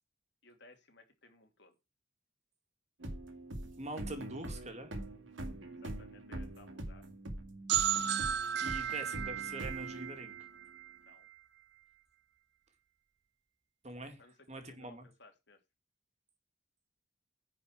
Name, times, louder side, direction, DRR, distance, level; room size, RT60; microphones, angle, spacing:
voice 1, 0.4-1.7 5.7-7.0 11.0-11.3 14.2-15.6, left 3 dB, 65° left, 2.9 m, -60 dB
sound 1, 3.0-10.6, right 1 dB, 80° right, 2.3 m, -44 dB
voice 2, 3.8-4.9 8.6-10.4 13.8-14.2 14.5-15.1, right 2 dB, 35° right, 2.2 m, -44 dB
sound 2, 7.7-11.3, right 10 dB, 65° right, 0.8 m, -35 dB
10.0 x 5.2 x 5.9 m
head